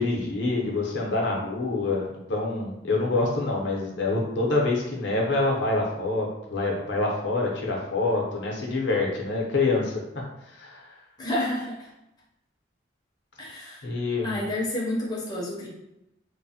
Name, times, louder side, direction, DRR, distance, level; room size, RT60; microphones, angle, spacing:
voice 1, 0.0-10.0 10.5-11.0 13.8-14.4, left 3 dB, 70° left, -2 dB, 0.6 m, -26 dB
voice 2, 11.2-11.9 13.4-13.9 14.2-15.7, left 1 dB, 20° left, -6 dB, 0.5 m, -30 dB
3.0 x 2.1 x 2.7 m, 0.86 s
head